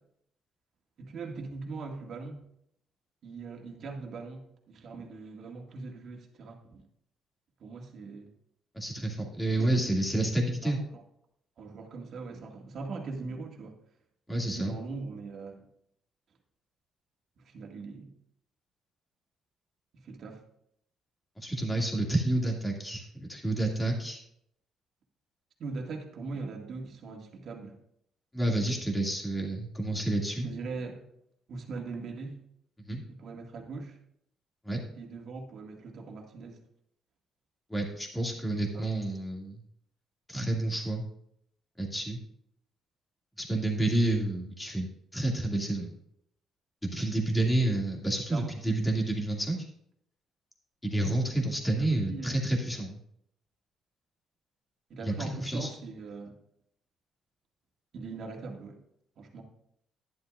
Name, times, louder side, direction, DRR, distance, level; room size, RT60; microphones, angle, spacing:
voice 1, 1.0-2.4 3.2-6.8 7.6-8.3 9.6-10.0 10.6-11.0 11.6-13.8 14.5-15.7 17.4-18.1 19.9-20.4 25.6-27.8 30.3-31.0 31.5-32.4 33.1-34.0 35.0-36.6 38.7-38.9 48.3-48.5 51.8-52.4 54.9-56.3 57.9-58.8 59.2-59.4, right 4 dB, 55° right, 1 dB, 1.9 m, -41 dB
voice 2, 8.7-10.8 14.3-14.8 21.4-24.2 28.3-30.5 32.9-33.0 34.6-34.8 37.7-39.6 40.3-41.0 41.8-42.2 43.4-44.9 45.1-45.9 46.9-49.7 50.8-53.0 55.0-55.7, right 1 dB, 10° left, 0 dB, 2.3 m, -29 dB
11.0 x 10.5 x 2.5 m, 0.71 s
cardioid pair, 120°, 0 cm